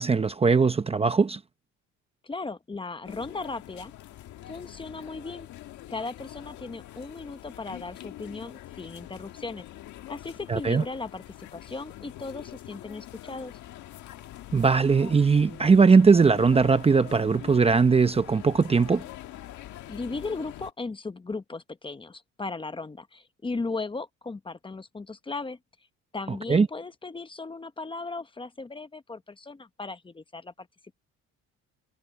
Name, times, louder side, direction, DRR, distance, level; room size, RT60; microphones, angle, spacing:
voice 1, 0.0-1.4 10.5-10.8 14.5-19.0 26.5-26.7, right 5 dB, 20° right, 0.8 m, -20 dB
voice 2, 2.2-3.9 4.5-5.5 5.9-9.6 10.1-13.6 19.9-25.6 26.1-30.7, left 3 dB, 15° left, 1.0 m, -37 dB
sound 1, 3.0-20.7, left 14 dB, 75° left, 1.7 m, -44 dB
cardioid pair, 120°, 30 cm